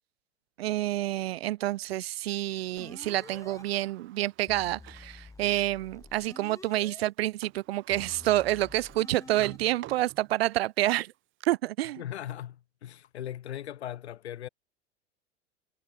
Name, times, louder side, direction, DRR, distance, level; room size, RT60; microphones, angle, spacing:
voice 1, 0.6-11.1 11.5-12.0, right 15 dB, 60° right, 0.6 m, -28 dB
Sliding door, 2.5-5.2 5.7-5.8 7.1-7.2 7.4-10.6 11.1-11.5, right 16 dB, 35° right, 1.6 m, -50 dB
sound 1, 2.8-3.6 4.5-7.0 7.9-9.6, left 3 dB, 10° left, 2.2 m, -49 dB
voice 2, 12.0-14.5, left 11 dB, 65° left, 4.3 m, -39 dB
figure-of-eight pair, 85°, 35 cm